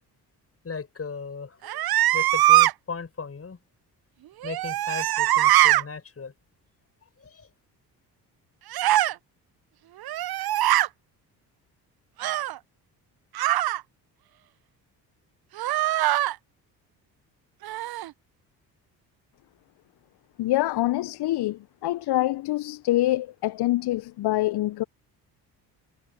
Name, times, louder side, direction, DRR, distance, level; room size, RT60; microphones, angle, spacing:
voice 1, 0.6-1.8 2.1-3.6 4.4-6.3 7.2-7.5, left 5 dB, 30° left, 6.8 m, -37 dB
sound 1, 1.6-2.7 4.4-5.8 8.7-9.1 10.0-10.9 12.2-12.6 13.3-13.8 15.6-16.3 17.6-18.1, right 15 dB, 45° right, 1.3 m, -22 dB
voice 2, 20.4-24.8, left 16 dB, 50° left, 1.6 m, -25 dB
figure-of-eight pair, 45°, 50 cm